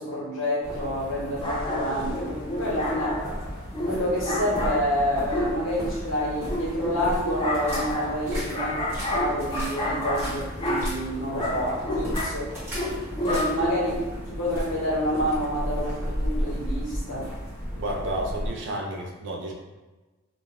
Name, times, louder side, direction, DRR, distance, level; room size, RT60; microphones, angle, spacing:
voice 1, 0.0-3.2 3.8-8.8 9.1-12.5 13.2-14.0 14.3-17.3, equal, 60° left, -7 dB, 1.1 m, -28 dB
sound 1, 0.6-18.5, equal, 10° right, 0.8 m, -34 dB
sound 2, 1.4-14.0, left 1 dB, 20° left, 0.4 m, -30 dB
voice 2, 17.7-19.5, right 1 dB, 55° right, 0 dB, 0.5 m, -31 dB
2.5 x 2.2 x 3.2 m, 1.2 s
head